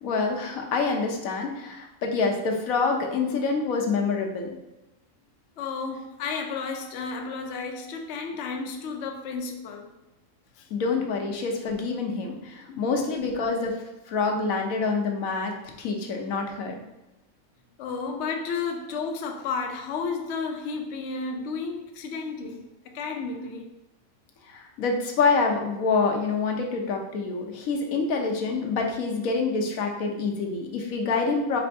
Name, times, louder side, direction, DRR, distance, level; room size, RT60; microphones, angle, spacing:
voice 1, 0.0-4.5 10.7-13.8 14.1-15.5 15.8-16.8 24.5-31.6, left 4 dB, 80° left, 1.2 m, -26 dB
voice 2, 5.6-9.9 10.6-10.7 12.7-12.8 17.8-23.7, left 4 dB, 65° left, 0.8 m, -32 dB
4.3 x 4.2 x 2.7 m
omnidirectional pair, 1.4 m